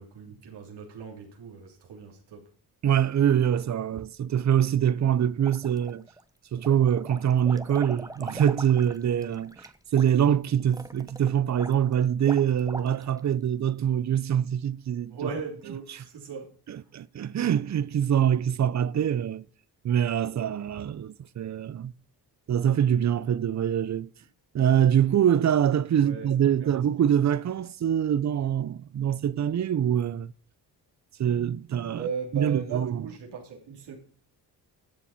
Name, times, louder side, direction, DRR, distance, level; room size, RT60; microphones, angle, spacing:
voice 1, 0.0-2.4 15.1-16.5 16.8-16.9 25.9-26.3 26.6-26.8 31.9-34.0, right 5 dB, 90° right, 3.1 m, -37 dB
voice 2, 2.8-6.1 6.5-15.2 15.9-16.0 16.7-19.4 19.8-21.9 22.5-24.1 24.5-30.3 31.2-32.1 32.3-33.1, right 9 dB, 45° right, 0.6 m, -24 dB
sound 1, 5.4-6.2 6.6-13.3, right 2 dB, 10° right, 1.0 m, -42 dB
12.0 x 7.1 x 5.7 m
cardioid pair, 85°, 40 cm